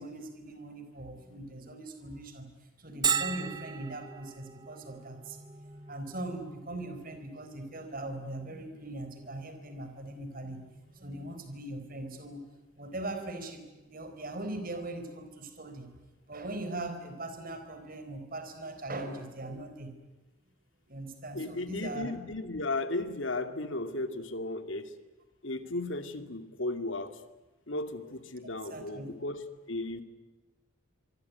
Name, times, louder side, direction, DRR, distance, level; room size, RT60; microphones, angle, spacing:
voice 1, 0.0-2.5 2.8-5.4 5.8-10.7 10.9-12.4 12.8-15.9 16.3-19.9 20.9-22.1 28.7-29.1, right 1 dB, 45° right, 8 dB, 4.4 m, -40 dB
Bell, 3.0-18.5, right 7 dB, 20° right, 1.1 m, -41 dB
voice 2, 21.3-24.9 25.4-27.2 27.7-30.0, left 2 dB, 65° left, 9 dB, 2.4 m, -35 dB
26.0 x 23.5 x 9.6 m, 1.1 s
head